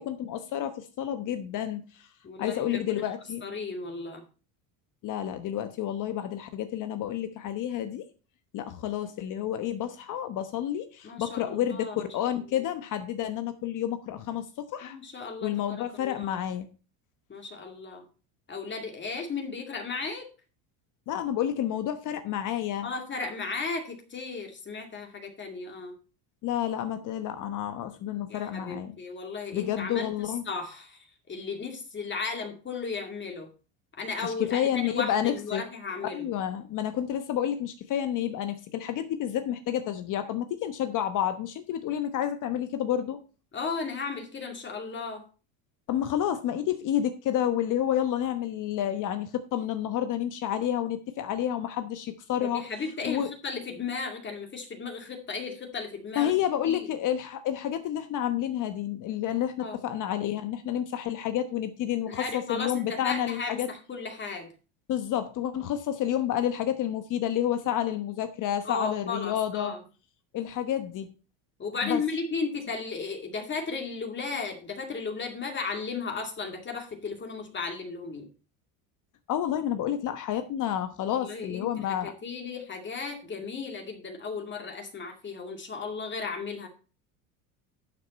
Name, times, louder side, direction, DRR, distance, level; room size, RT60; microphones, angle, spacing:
voice 1, 0.0-2.1 2.4-3.4 5.0-8.0 8.5-15.0 15.4-16.7 21.1-22.9 26.4-28.9 29.5-30.4 34.2-35.6 36.1-43.2 45.9-52.7 53.0-53.3 56.1-63.7 64.9-69.7 70.3-71.1 71.8-72.0 79.3-82.1, left 10 dB, 50° left, 9 dB, 1.1 m, -30 dB
voice 2, 2.2-3.1 3.4-4.2 11.0-12.6 14.8-16.4 17.3-18.0 18.5-20.3 22.8-26.0 28.3-33.5 33.9-36.3 43.5-45.3 52.4-56.3 56.6-56.9 59.6-59.8 62.1-64.5 68.6-69.8 71.6-78.2 81.2-81.7 82.0-86.7, left 4 dB, 25° left, 3 dB, 2.3 m, -35 dB
11.5 x 6.6 x 4.1 m, 0.34 s
supercardioid pair, 115°, 41 cm